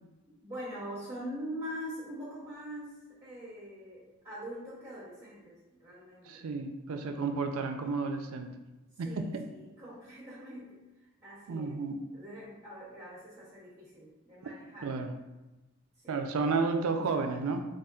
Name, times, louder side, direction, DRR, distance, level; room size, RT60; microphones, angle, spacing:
voice 1, 0.4-6.5 6.9-7.4 7.8-8.0 9.0-11.8 12.1-14.9 16.0-17.3, equal, 10° right, -7 dB, 0.7 m, -44 dB
voice 2, 6.2-8.6 9.0-9.4 11.5-12.0 14.8-15.1 16.1-17.6, right 4 dB, 75° right, 6 dB, 0.4 m, -32 dB
4.9 x 2.4 x 2.3 m, 1.1 s
head